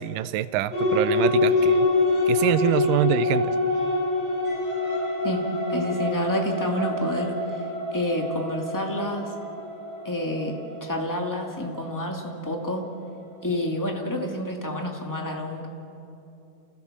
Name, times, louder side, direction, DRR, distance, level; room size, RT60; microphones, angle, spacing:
voice 1, 0.0-1.9 2.3-3.5, right 13 dB, 90° right, 14 dB, 2.3 m, -25 dB
sound 1, 0.7-12.7, left 2 dB, 80° left, 8.5 m, -26 dB
voice 2, 5.7-7.4 7.9-9.3 10.0-12.9 13.4-15.7, left 1 dB, 5° left, 1 dB, 1.6 m, -28 dB
29.5 x 16.0 x 7.3 m, 2.7 s
omnidirectional pair, 3.7 m